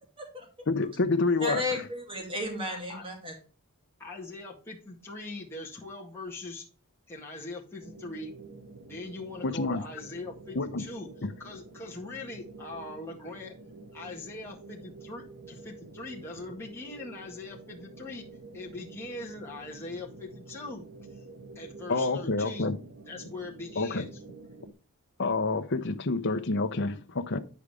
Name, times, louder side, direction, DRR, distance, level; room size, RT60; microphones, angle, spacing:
voice 1, 0.7-1.6 9.4-9.8 10.6-10.8 11.2-11.3 21.9-22.8 23.8-24.1 25.2-27.4, left 3 dB, 55° left, 0.8 m, -28 dB
voice 2, 1.4-3.3, left 1 dB, 25° right, 2.5 m, -33 dB
voice 3, 2.7-3.0 4.0-6.6 7.1-8.3 8.8-11.1 11.4-13.5 13.9-18.2 18.5-20.8 21.2-21.3 21.6-22.7 23.1-24.1, left 2 dB, 10° left, 1.8 m, -41 dB
sound 1, 7.8-24.7, right 3 dB, 65° right, 1.1 m, -48 dB
10.0 x 5.0 x 3.4 m
head